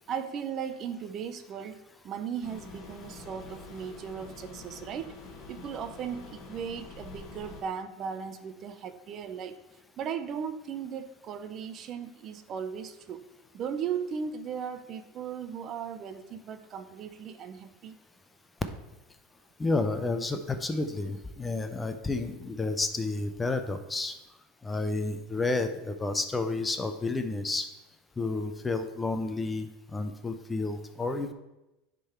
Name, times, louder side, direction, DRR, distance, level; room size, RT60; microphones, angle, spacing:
voice 1, 0.1-1.8 2.0-5.1 5.5-9.6 10.0-13.2 13.5-17.9, right 7 dB, 45° right, 10 dB, 0.5 m, -37 dB
sound 1, 2.4-7.6, left 3 dB, 50° left, 1.6 m, -46 dB
voice 2, 19.6-24.2 24.6-27.7 28.2-31.3, left 3 dB, 15° left, 8 dB, 0.6 m, -31 dB
10.0 x 3.8 x 4.3 m, 0.97 s
supercardioid pair, 115°, 0 cm